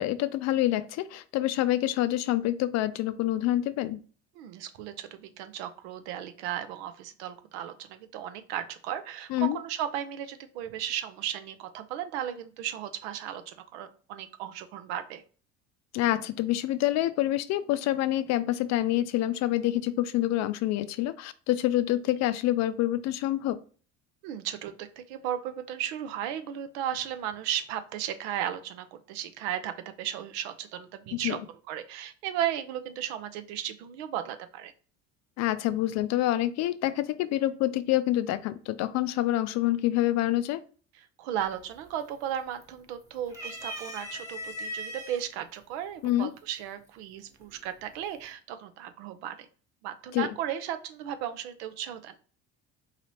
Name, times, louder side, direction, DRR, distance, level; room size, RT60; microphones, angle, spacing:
voice 1, 0.0-4.0 9.3-9.6 15.9-23.6 31.1-31.4 35.4-40.6 46.0-46.3 50.1-50.3, left 14 dB, 55° left, 13 dB, 0.4 m, -27 dB
voice 2, 4.4-15.2 24.2-31.4 31.7-34.7 41.2-49.5 49.8-52.1, right 10 dB, 85° right, 10 dB, 0.6 m, -35 dB
sound 1, 41.4-41.8 42.2-42.9 43.3-45.2 46.1-46.2 47.4-47.9, equal, 10° right, 1.1 m, -39 dB
4.0 x 2.9 x 3.0 m, 0.40 s
supercardioid pair, 85°, 32 cm